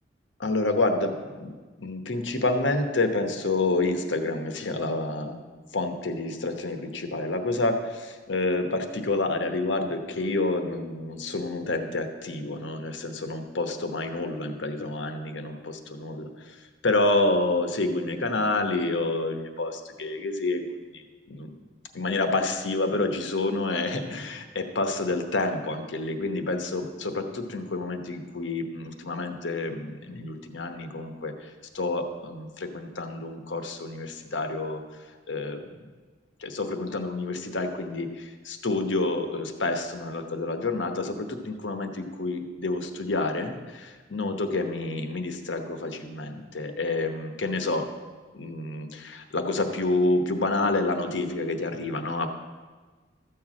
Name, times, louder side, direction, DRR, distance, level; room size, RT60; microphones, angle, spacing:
voice 1, 0.4-1.5 1.8-5.4 5.7-21.0 21.3-21.5 21.9-35.9 36.4-47.8 48.3-52.3, left 2 dB, 80° left, 6 dB, 1.0 m, -28 dB
13.5 x 4.7 x 7.5 m, 1.4 s
head